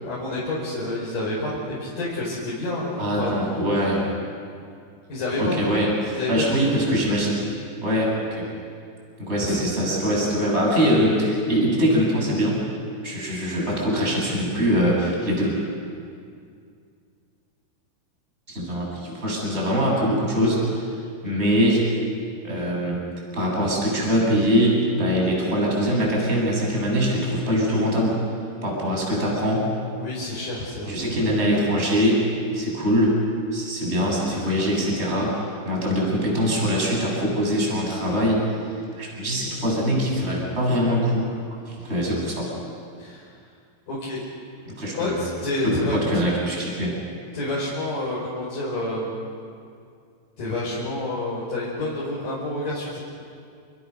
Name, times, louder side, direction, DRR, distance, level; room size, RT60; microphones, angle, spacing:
voice 1, 0.0-3.3 5.1-5.6 6.1-6.7 9.4-9.5 30.0-31.0 41.9-42.2 43.0-43.2 43.9-44.2 44.9-46.0 47.3-49.2 50.4-53.0, left 2 dB, 45° left, -7 dB, 6.6 m, -29 dB
voice 2, 3.0-4.0 5.4-7.4 7.8-8.5 9.2-12.6 13.0-15.5 18.5-20.9 21.2-21.8 22.4-23.0 23.3-28.1 28.6-29.7 30.9-32.2 32.5-33.2 33.5-38.4 38.9-41.3 41.7-42.5 44.7-45.3 45.6-46.9, equal, 15° right, -2 dB, 7.4 m, -23 dB
29.5 x 28.0 x 6.6 m, 2.3 s
omnidirectional pair, 5.4 m